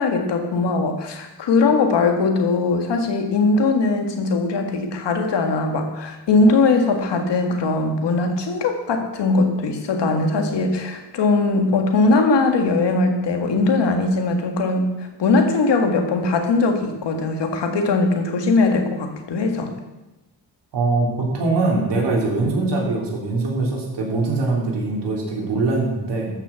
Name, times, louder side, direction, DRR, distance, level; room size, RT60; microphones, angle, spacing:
voice 1, 0.0-19.7, left 3 dB, 90° left, 4 dB, 1.9 m, -20 dB
voice 2, 20.7-26.3, right 3 dB, 90° right, -1 dB, 3.3 m, -22 dB
13.0 x 6.4 x 7.0 m, 1.0 s
wide cardioid pair, 115°, 41 cm